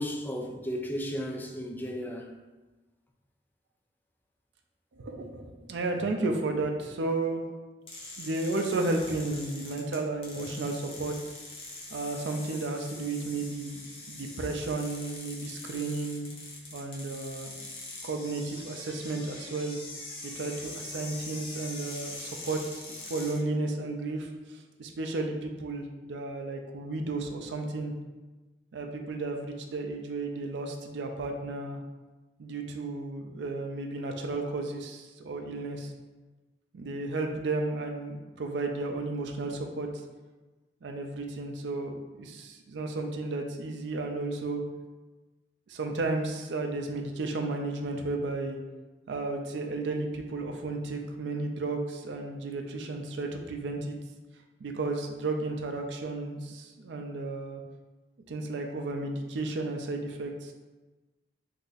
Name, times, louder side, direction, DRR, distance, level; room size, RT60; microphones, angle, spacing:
voice 1, 0.0-2.3, equal, 10° left, 1 dB, 0.3 m, -34 dB
voice 2, 4.9-7.4 8.2-11.3 11.9-13.8 14.1-16.3 16.7-17.7 18.0-19.8 20.2-27.9 28.7-31.8 32.4-35.9 36.7-40.0 40.8-44.6 45.7-48.6 49.1-53.9 54.6-57.6 58.3-60.5, right 2 dB, 80° right, 3 dB, 0.4 m, -33 dB
sound 1, 7.9-23.4, left 2 dB, 30° left, 0.7 m, -43 dB
2.7 x 2.5 x 3.9 m, 1.2 s
head